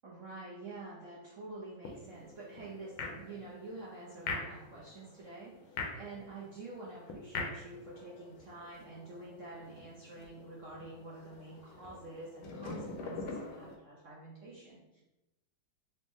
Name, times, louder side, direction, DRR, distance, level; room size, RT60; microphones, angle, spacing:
voice 1, 0.0-15.0, right 2 dB, 65° right, -6 dB, 0.7 m, -48 dB
sound 1, 1.8-13.8, left 3 dB, 80° left, 1.5 m, -44 dB
4.1 x 2.9 x 3.6 m, 0.95 s
omnidirectional pair, 2.2 m